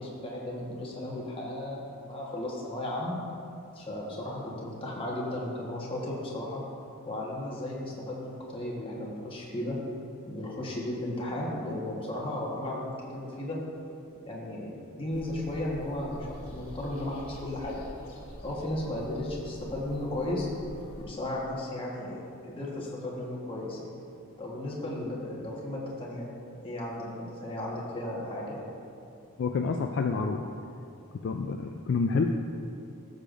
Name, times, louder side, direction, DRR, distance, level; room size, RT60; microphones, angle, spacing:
voice 1, 0.0-3.2 3.7-6.6 7.0-9.8 10.3-13.6 14.3-17.8 18.4-20.5 21.0-23.9 24.4-26.3 26.6-28.6, left 1 dB, 25° left, -4 dB, 1.3 m, -35 dB
sound 1, 15.1-21.0, equal, 80° left, 1.5 m, -46 dB
voice 2, 29.4-30.4 31.2-32.2, left 4 dB, 55° left, 4 dB, 0.3 m, -28 dB
13.0 x 6.6 x 2.5 m, 2.6 s
head